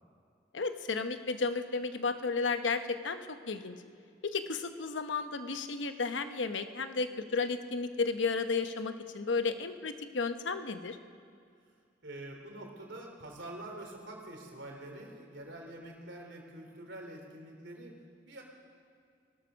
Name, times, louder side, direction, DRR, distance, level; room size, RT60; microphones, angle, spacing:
voice 1, 0.5-3.2 3.5-3.8 4.2-11.0, left 4 dB, 80° left, 9 dB, 0.9 m, -33 dB
voice 2, 12.0-17.9 18.3-18.4, right 1 dB, 70° right, 2 dB, 3.0 m, -46 dB
19.0 x 12.5 x 6.2 m, 2.3 s
head